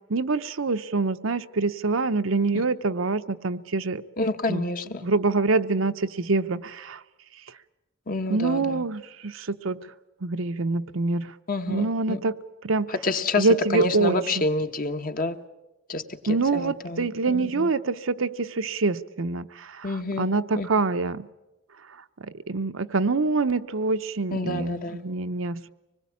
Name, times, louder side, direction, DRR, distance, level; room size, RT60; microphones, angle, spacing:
voice 1, 0.1-4.0 4.5-4.7 5.0-7.0 8.3-9.9 10.2-11.3 11.7-12.4 12.6-12.9 13.4-14.4 16.3-21.3 22.2-25.7, right 3 dB, 70° right, 10 dB, 0.8 m, -25 dB
voice 2, 4.2-5.1 8.1-8.8 11.5-12.2 12.9-13.5 13.7-15.4 15.9-17.7 19.8-20.3 20.6-20.7 24.3-25.0, left 2 dB, 45° left, 7 dB, 1.2 m, -28 dB
25.0 x 20.5 x 8.5 m, 1.0 s
head